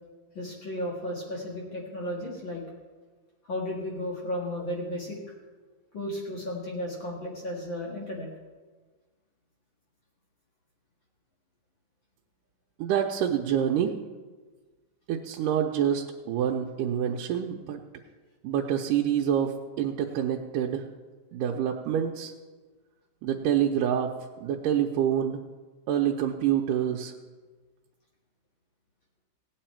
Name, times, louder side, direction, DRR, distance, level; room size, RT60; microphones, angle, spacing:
voice 1, 0.3-2.6 3.4-5.2 5.9-8.3, left 1 dB, 40° left, -2 dB, 2.3 m, -34 dB
voice 2, 12.8-13.9 15.1-17.8 18.4-20.9 21.3-22.3 23.2-25.4 25.9-27.1, right 9 dB, 85° right, 0 dB, 2.3 m, -27 dB
17.0 x 9.5 x 4.4 m, 1.3 s
omnidirectional pair, 3.8 m